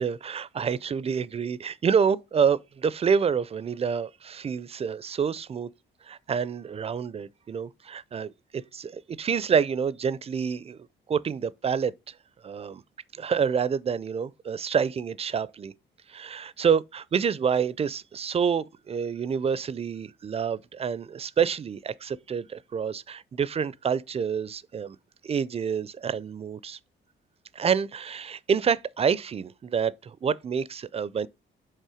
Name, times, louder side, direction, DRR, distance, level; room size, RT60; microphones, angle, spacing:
voice 1, 0.0-5.7 6.1-10.8 11.1-12.1 12.4-12.8 13.1-15.7 16.1-25.0 25.2-26.8 27.5-31.3, right 6 dB, 30° right, 0.4 m, -28 dB
5.5 x 3.5 x 4.9 m
cardioid pair, 90°, 20 cm